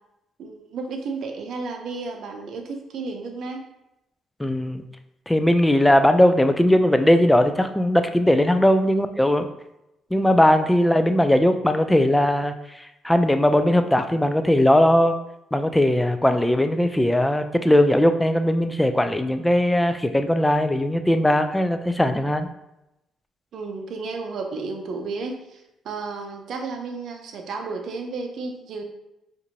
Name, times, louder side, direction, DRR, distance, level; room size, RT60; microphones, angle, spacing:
voice 1, 0.4-3.6 23.5-28.8, right 4 dB, 70° right, 3 dB, 0.6 m, -32 dB
voice 2, 4.4-4.8 5.3-9.5 10.1-15.2 15.5-22.5, left 1 dB, 10° left, 8 dB, 0.3 m, -19 dB
4.3 x 2.6 x 2.7 m, 0.88 s
cardioid pair, 90°, 0 cm